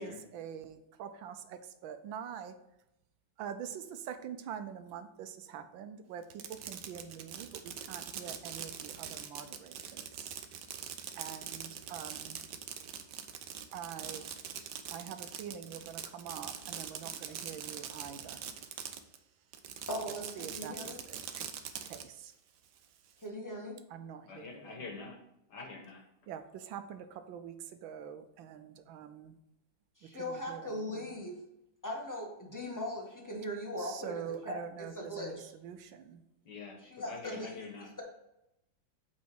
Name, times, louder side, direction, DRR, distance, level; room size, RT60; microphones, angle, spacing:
voice 1, 0.0-2.5 3.4-10.4 11.1-12.4 13.7-14.3 14.9-18.4 20.4-21.5 21.8-22.3 23.9-24.8 26.3-29.3 30.0-31.1 33.8-36.2, right 8 dB, 90° right, 9 dB, 1.5 m, -45 dB
Fireworks, 6.2-19.2 19.5-22.0, right 8 dB, 70° right, 1.2 m, -43 dB
voice 2, 19.9-21.0 23.2-23.8 30.0-31.4 31.8-35.5 36.8-37.7, left 1 dB, 10° left, -1 dB, 1.4 m, -39 dB
voice 3, 24.3-25.2 25.5-26.0 36.5-37.9, left 3 dB, 60° left, 3 dB, 1.8 m, -45 dB
8.5 x 4.2 x 4.7 m, 0.84 s
omnidirectional pair, 2.1 m